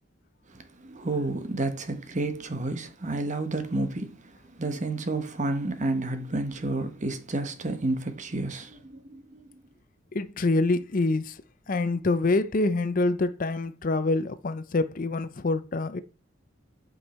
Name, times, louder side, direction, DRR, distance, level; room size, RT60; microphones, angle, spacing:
voice 1, 0.5-9.5, right 2 dB, 40° right, 1.1 m, -31 dB
voice 2, 10.1-11.4 11.7-16.0, left 2 dB, 45° left, 0.5 m, -26 dB
8.6 x 5.4 x 4.2 m
head